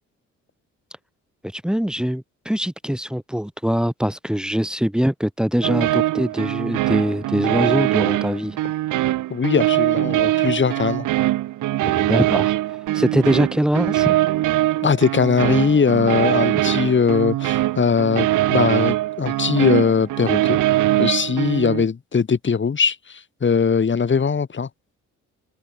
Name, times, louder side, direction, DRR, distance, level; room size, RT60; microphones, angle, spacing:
voice 1, 1.5-8.6 11.8-12.6 12.9-14.1, equal, 5° right, 4.5 m, -22 dB
sound 1, 5.6-21.8, right 15 dB, 85° right, 5.0 m, -22 dB
voice 2, 9.3-11.1 14.8-20.6 21.0-24.7, left 6 dB, 40° left, 5.7 m, -20 dB
cardioid pair, 90°, 30 cm